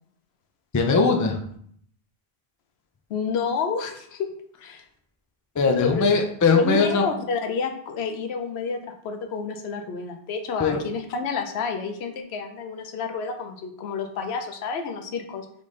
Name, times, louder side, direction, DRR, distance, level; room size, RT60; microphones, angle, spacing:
voice 1, 0.7-1.4 5.6-7.0 10.6-10.8, left 4 dB, 30° left, 3 dB, 0.3 m, -20 dB
voice 2, 3.1-4.3 4.6-4.8 5.7-6.1 6.5-15.5, left 5 dB, 80° left, 6 dB, 0.8 m, -29 dB
3.9 x 3.3 x 3.1 m, 0.64 s
omnidirectional pair, 1.1 m